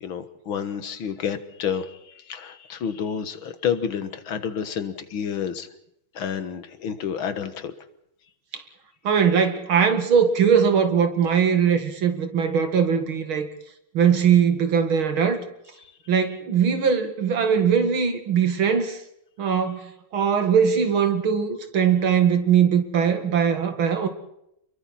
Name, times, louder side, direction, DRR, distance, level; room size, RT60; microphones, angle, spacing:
voice 1, 0.0-5.7 6.1-7.7, left 7 dB, 75° left, 2.3 m, -29 dB
voice 2, 9.0-13.5 13.9-15.4 16.1-19.0 19.4-24.1, right 7 dB, 75° right, 2.9 m, -21 dB
29.5 x 22.5 x 4.3 m
omnidirectional pair, 2.3 m